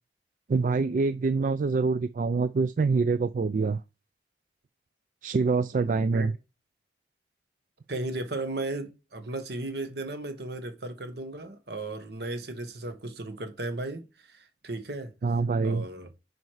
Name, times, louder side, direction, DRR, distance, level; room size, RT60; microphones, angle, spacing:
voice 1, 0.5-3.8 5.2-6.3 15.2-15.9, right 4 dB, 45° right, 0.3 m, -25 dB
voice 2, 7.9-15.1 15.6-16.1, right 2 dB, 65° right, 1.4 m, -35 dB
9.4 x 4.6 x 4.8 m
head